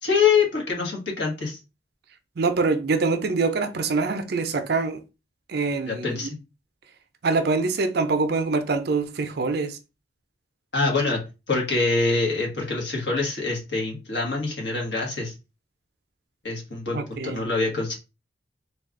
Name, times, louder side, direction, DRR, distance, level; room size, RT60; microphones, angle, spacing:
voice 1, 0.0-1.6 5.8-6.4 10.7-11.2 11.5-15.3 16.4-17.9, left 4 dB, 65° left, 1.3 m, -25 dB
voice 2, 2.4-5.0 5.5-6.3 7.2-9.8 16.9-17.5, right 3 dB, 55° right, 0.5 m, -24 dB
3.3 x 2.3 x 3.6 m
head